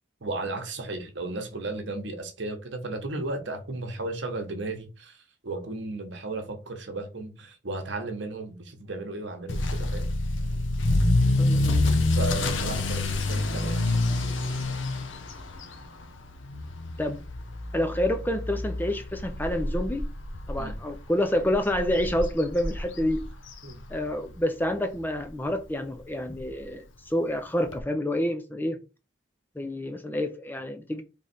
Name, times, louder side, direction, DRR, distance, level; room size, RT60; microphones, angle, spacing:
voice 1, 0.2-10.1 12.1-14.3 20.6-20.8 23.6-23.8, right 2 dB, 65° right, 1.0 m, -35 dB
Motor vehicle (road) / Accelerating revving vroom, 9.5-24.3 24.6-25.0 25.5-25.6 25.9-26.0 26.3-26.4 27.7-27.8, left 2 dB, 75° left, 0.8 m, -28 dB
voice 2, 11.4-11.9 17.0-17.2 17.7-20.1 20.5-23.3 23.9-28.8 29.6-31.0, left 1 dB, 10° left, 0.4 m, -28 dB
3.6 x 3.1 x 4.1 m
head